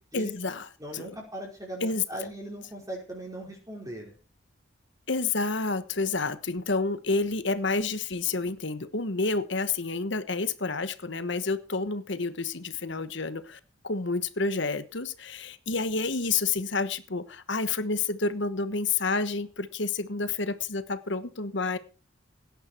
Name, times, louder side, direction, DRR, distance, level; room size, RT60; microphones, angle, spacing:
voice 1, 0.1-0.7 0.9-1.0 1.8-2.0 5.1-21.8, left 3 dB, 60° left, 12 dB, 1.2 m, -29 dB
voice 2, 0.8-4.2, right 1 dB, 15° right, -2 dB, 5.0 m, -39 dB
17.5 x 11.0 x 4.5 m, 0.33 s
head